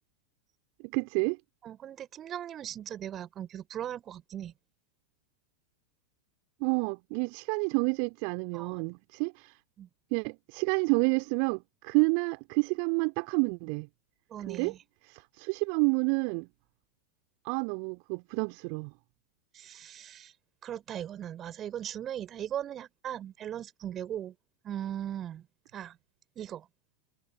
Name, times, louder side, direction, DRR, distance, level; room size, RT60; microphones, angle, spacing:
voice 1, 0.8-1.4 6.6-9.5 10.1-13.9 14.4-14.7 15.4-16.5 17.4-18.9, right 40 dB or more, 45° right, 2.8 m, -29 dB
voice 2, 1.6-4.5 8.5-8.8 9.8-9.9 14.3-14.8 19.5-20.3 20.6-24.3 24.6-25.4 25.7-26.0 26.3-26.7, right 10 dB, 30° right, 3.5 m, -38 dB
figure-of-eight pair, 90°, 0 cm